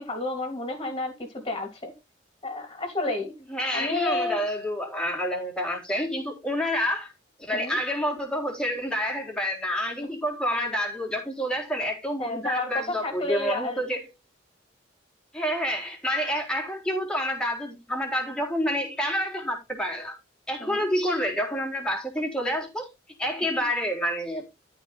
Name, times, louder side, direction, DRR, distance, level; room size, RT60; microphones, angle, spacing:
voice 1, 0.0-1.9 2.4-3.3 3.7-4.4 7.5-7.8 12.2-13.8 20.6-20.8, left 2 dB, 25° left, 3.0 m, -30 dB
voice 2, 3.5-7.1 7.4-14.1 15.3-20.2 20.5-22.9 23.2-24.5, equal, 5° left, 3.9 m, -28 dB
13.0 x 5.2 x 4.2 m
head